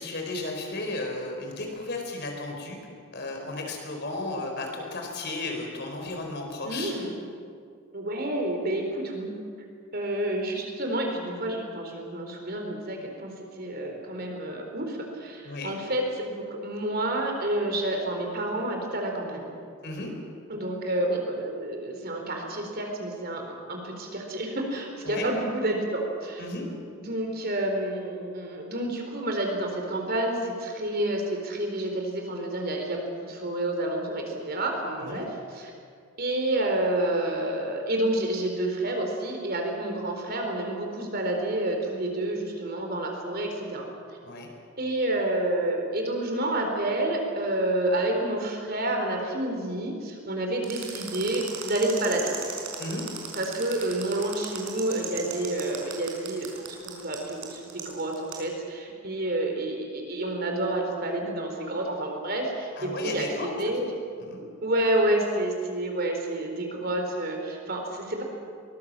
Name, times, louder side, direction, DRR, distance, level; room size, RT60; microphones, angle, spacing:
voice 1, 0.0-2.8 3.1-6.9 15.4-15.7 19.8-20.1 25.0-25.3 26.4-26.7 35.0-35.2 44.2-44.5 52.8-53.0 62.8-63.5 64.2-64.4, left 2 dB, 50° left, 2 dB, 4.4 m, -34 dB
voice 2, 6.6-7.1 7.9-9.3 9.9-19.5 20.5-26.5 26.9-35.7 36.2-43.9 44.8-52.3 53.3-63.9 64.6-68.2, right 1 dB, 45° right, 2 dB, 4.1 m, -29 dB
sound 1, 50.6-58.4, right 7 dB, 65° right, 5.1 m, -37 dB
23.5 x 20.0 x 7.6 m, 2.3 s
head